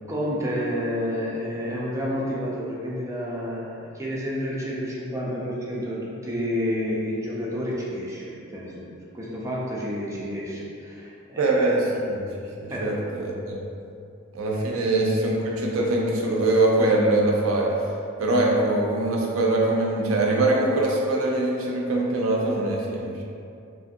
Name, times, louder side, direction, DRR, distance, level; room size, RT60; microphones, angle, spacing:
voice 1, 0.1-8.8 9.1-11.5 12.7-12.9 14.7-14.9, equal, 15° right, -6 dB, 0.4 m, -30 dB
voice 2, 11.4-12.3 12.6-13.6 14.3-17.7 18.2-23.2, right 2 dB, 80° right, -2 dB, 0.5 m, -23 dB
3.0 x 2.5 x 2.5 m, 2.5 s
head